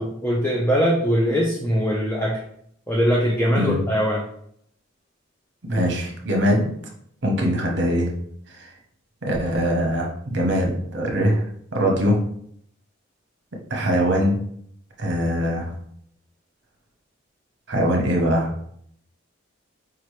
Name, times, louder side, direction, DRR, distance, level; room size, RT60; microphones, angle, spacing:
voice 1, 0.0-2.4 2.9-4.2, equal, 10° left, -3 dB, 0.5 m, -21 dB
voice 2, 5.7-6.7 7.2-8.1 8.6-8.7 9.2-11.4 11.7-12.2 13.7-14.4 15.0-15.7 17.7-18.5, equal, 55° right, 0 dB, 0.9 m, -22 dB
4.9 x 2.9 x 3.1 m, 0.67 s
head